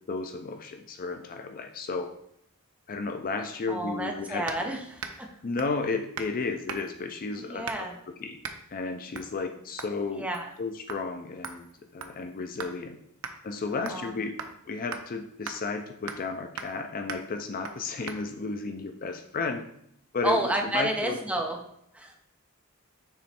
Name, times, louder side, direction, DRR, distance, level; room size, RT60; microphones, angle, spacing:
voice 1, 0.1-2.1 2.9-4.7 5.4-7.9 8.2-8.4 8.7-10.3 10.6-11.7 11.9-13.0 13.4-14.3 14.7-19.6 20.1-21.2, left 4 dB, 40° left, 6 dB, 0.4 m, -33 dB
voice 2, 3.7-5.3 7.4-8.0 10.1-10.5 13.7-14.2 20.2-21.6 21.9-22.1, right 1 dB, 5° right, 1 dB, 0.7 m, -31 dB
sound 1, 4.5-4.7 5.0-5.3 5.6-5.8 6.2-6.4 6.7-7.0 7.7-8.0 8.4-8.6 9.1-9.3 9.8-10.0 10.3-10.6 10.9-11.0 11.4-12.8 13.2-13.4 13.9-14.1 14.4-14.5 14.9-15.0 15.5-15.6 16.1-16.3 16.6-16.8 17.1-17.3 17.6-17.8 18.1-18.2, right 5 dB, 65° right, 0.6 m, -39 dB
7.1 x 3.2 x 4.3 m, 0.73 s
head